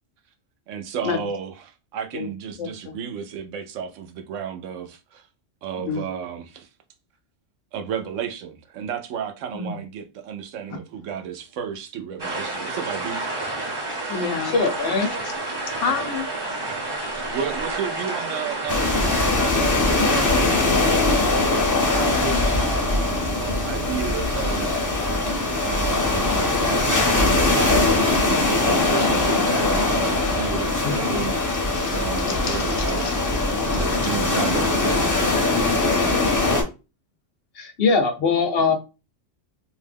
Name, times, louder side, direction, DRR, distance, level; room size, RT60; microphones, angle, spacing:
voice 1, 0.7-5.3 5.6-6.7 7.7-13.2 17.3-24.7 25.6-33.3 33.7-35.5, right 7 dB, 85° right, 0.9 m, -33 dB
voice 2, 2.6-3.0 5.8-6.0 9.5-9.8 13.9-14.5 15.2-15.3 15.8-16.3, left 6 dB, 90° left, 0.9 m, -28 dB
sound 1, 12.2-19.3, right 2 dB, 25° right, 0.6 m, -30 dB
sound 2, 13.9-30.7, right 10 dB, 55° right, 0.8 m, -39 dB
voice 3, 14.4-15.1 30.8-30.9 31.7-32.0 32.4-32.7 33.0-33.2 37.6-38.7, left 4 dB, 60° left, 0.8 m, -22 dB
sound 3, 18.7-36.6, left 2 dB, 20° left, 0.5 m, -21 dB
2.7 x 2.1 x 3.3 m
omnidirectional pair, 1.3 m